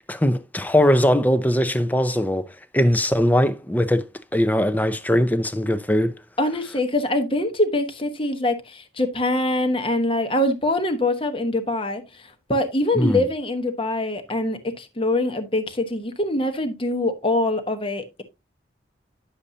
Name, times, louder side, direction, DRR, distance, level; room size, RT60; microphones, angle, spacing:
voice 1, 0.1-2.5 2.7-6.1 12.9-13.2, equal, 10° left, 0.6 m, -20 dB
voice 2, 6.4-18.2, left 1 dB, 30° left, 1.0 m, -24 dB
9.9 x 6.9 x 2.8 m
head